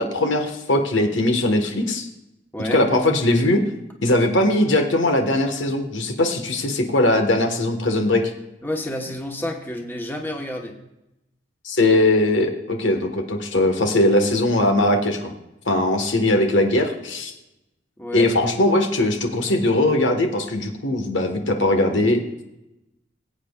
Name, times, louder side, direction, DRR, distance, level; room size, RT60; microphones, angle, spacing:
voice 1, 0.0-2.1 2.7-3.6 4.0-8.2 11.6-15.3 15.7-17.3 18.1-22.2, left 1 dB, 90° left, 4 dB, 1.4 m, -20 dB
voice 2, 8.6-10.8 18.0-18.3, left 1 dB, 10° left, 2 dB, 1.1 m, -29 dB
20.5 x 8.6 x 2.4 m, 0.92 s
head